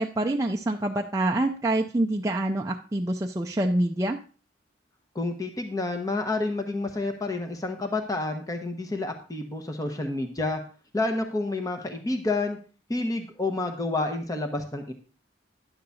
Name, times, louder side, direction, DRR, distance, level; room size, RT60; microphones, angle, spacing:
voice 1, 0.0-4.2, right 1 dB, 15° right, 0 dB, 0.4 m, -26 dB
voice 2, 5.1-10.6 10.9-12.6 12.9-14.9, left 2 dB, 20° left, 5 dB, 0.9 m, -29 dB
10.5 x 3.8 x 7.0 m, 0.37 s
head